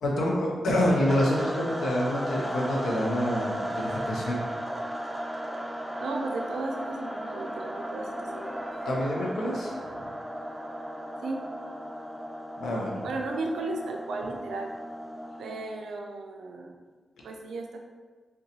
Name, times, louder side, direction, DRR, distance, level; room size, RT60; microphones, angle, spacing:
voice 1, 0.0-4.4 8.9-10.0 12.6-13.1, left 1 dB, 85° left, -2 dB, 0.5 m, -27 dB
sound 1, 1.1-15.8, equal, 10° right, 0.4 m, -36 dB
voice 2, 6.0-8.6 11.2-11.4 13.0-14.7 15.4-16.8 17.2-17.8, right 3 dB, 90° right, 1 dB, 0.3 m, -35 dB
sound 2, 8.1-9.5, left 1 dB, 25° left, 1.3 m, -46 dB
3.7 x 2.2 x 2.7 m, 1.4 s
cardioid pair, 55°, 0 cm